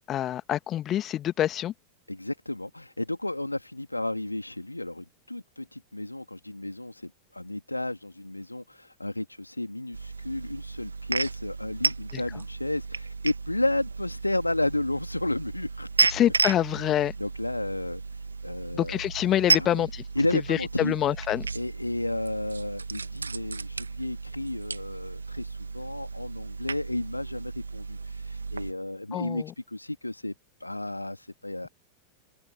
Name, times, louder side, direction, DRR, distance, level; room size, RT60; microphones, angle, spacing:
voice 1, 0.1-1.7 12.1-12.2 16.1-17.1 18.7-20.0 20.5-21.5 29.1-29.5, left 12 dB, 30° left, 1.8 m, -26 dB
voice 2, 2.1-15.9 16.8-18.0 18.4-19.0 19.5-19.9 20.2-20.9 21.5-30.3 30.6-31.7, left 1 dB, 85° left, 2.5 m, -32 dB
sound 1, 9.9-28.7, right 4 dB, 75° right, 2.0 m, -33 dB
figure-of-eight pair, 90°, 0 cm